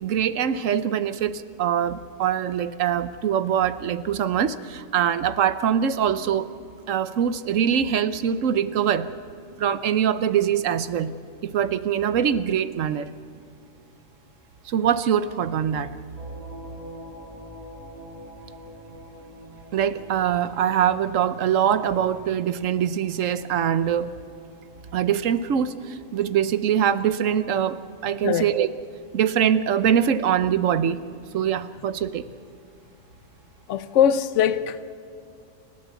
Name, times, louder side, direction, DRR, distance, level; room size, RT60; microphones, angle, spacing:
voice 1, 0.0-6.5 6.9-9.1 9.6-11.1 11.4-13.1 14.6-16.0 19.7-24.1 24.9-28.7 29.1-31.0 31.3-32.3, right 9 dB, 85° right, 1.2 m, -23 dB
sound 1, 16.2-26.4, equal, 30° right, 2.8 m, -46 dB
voice 2, 33.7-34.9, left 9 dB, 75° left, 1.0 m, -21 dB
29.0 x 13.0 x 8.3 m
omnidirectional pair, 1.3 m